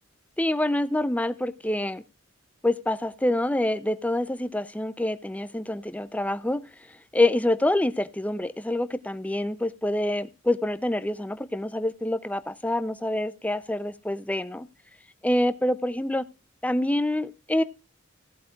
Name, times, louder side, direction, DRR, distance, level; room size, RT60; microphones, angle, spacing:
voice 1, 0.4-2.0 2.6-6.6 7.1-14.7 15.2-16.2 16.6-17.6, left 1 dB, 5° left, 0.5 m, -26 dB
16.5 x 8.4 x 2.4 m
head